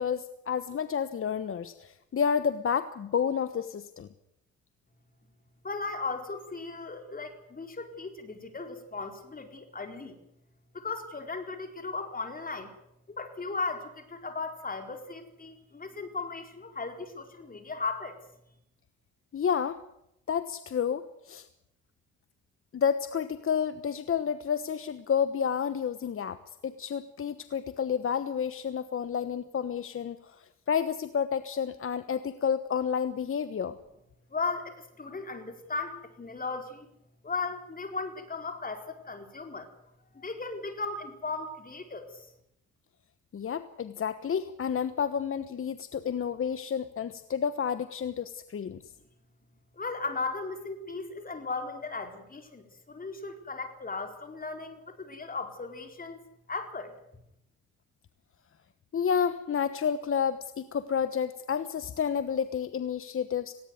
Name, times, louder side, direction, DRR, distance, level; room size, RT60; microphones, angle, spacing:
voice 1, 0.0-4.1 19.3-19.8 20.3-21.5 22.7-33.7 43.3-48.8 58.9-63.5, left 7 dB, 45° left, 12 dB, 1.2 m, -30 dB
voice 2, 5.6-10.2 10.7-12.7 13.1-18.2 34.3-36.9 37.2-39.7 40.1-42.3 49.7-56.2 56.5-56.9, left 3 dB, 30° left, 6 dB, 4.3 m, -36 dB
19.0 x 17.5 x 9.5 m, 0.80 s
cardioid pair, 90°, 30 cm